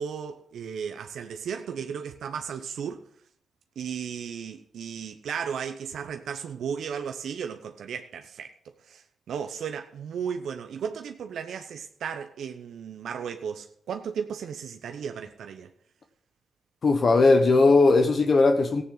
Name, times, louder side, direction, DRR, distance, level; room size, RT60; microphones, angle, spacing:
voice 1, 0.0-3.0 3.8-8.5 8.9-15.7, right 7 dB, 80° right, 0.8 m, -35 dB
voice 2, 16.8-18.8, left 3 dB, 55° left, 1.3 m, -18 dB
15.0 x 9.6 x 4.0 m
cardioid pair, 55°, 0 cm